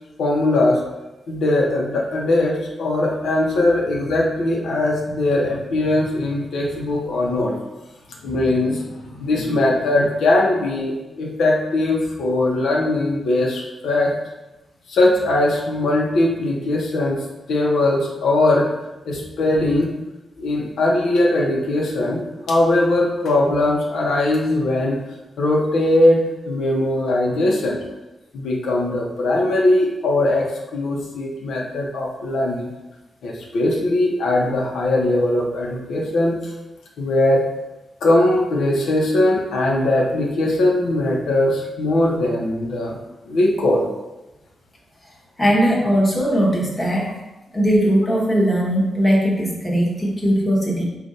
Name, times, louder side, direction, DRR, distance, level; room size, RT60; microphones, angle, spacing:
voice 1, 0.2-0.8 1.3-7.5 8.2-14.1 14.9-17.2 17.5-18.7 19.1-19.9 20.4-25.0 25.4-27.8 28.3-32.7 33.2-36.4 37.0-37.4 38.0-43.0 43.3-43.9, left 1 dB, 90° left, -2 dB, 0.8 m, -20 dB
voice 2, 45.4-47.1 47.5-50.8, equal, 15° left, -4 dB, 1.0 m, -19 dB
5.1 x 2.5 x 4.1 m, 1.0 s
wide cardioid pair, 160°, 0 cm